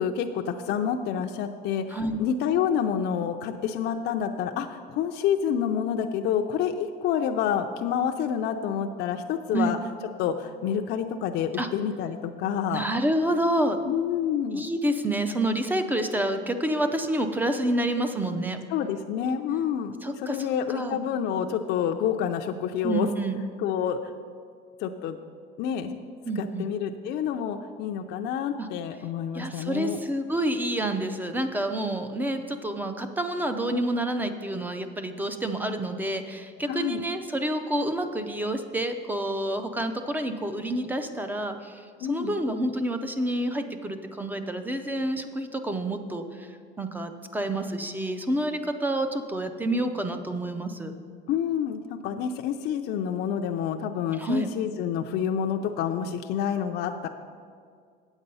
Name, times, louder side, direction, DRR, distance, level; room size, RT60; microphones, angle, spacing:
voice 1, 0.0-9.8 10.2-12.8 13.9-14.6 18.7-23.1 23.6-24.1 24.8-25.2 25.6-25.9 26.4-30.0 36.7-37.1 42.0-42.4 51.3-57.1, left 8 dB, 60° left, 4 dB, 0.5 m, -28 dB
voice 2, 12.7-13.8 14.5-18.6 20.0-21.0 22.8-23.4 26.3-26.7 28.6-28.7 29.3-41.8 42.1-46.5 46.8-50.9 54.2-54.5, right 1 dB, 10° right, 8 dB, 0.5 m, -28 dB
8.3 x 8.1 x 5.4 m, 2.1 s
cardioid pair, 160°, 20 cm